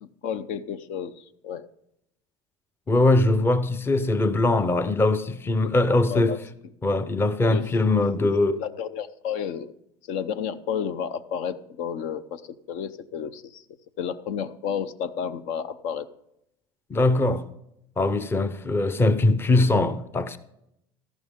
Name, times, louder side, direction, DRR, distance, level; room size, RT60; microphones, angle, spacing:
voice 1, 0.0-1.7 5.6-6.4 7.5-7.6 7.9-8.3 8.6-9.7 10.1-13.6 14.0-16.1, left 8 dB, 65° left, 0.7 m, -32 dB
voice 2, 2.9-6.4 6.8-8.6 16.9-17.5 18.0-20.4, left 2 dB, 15° left, 0.7 m, -21 dB
13.5 x 11.5 x 3.7 m
supercardioid pair, 115°, 13 cm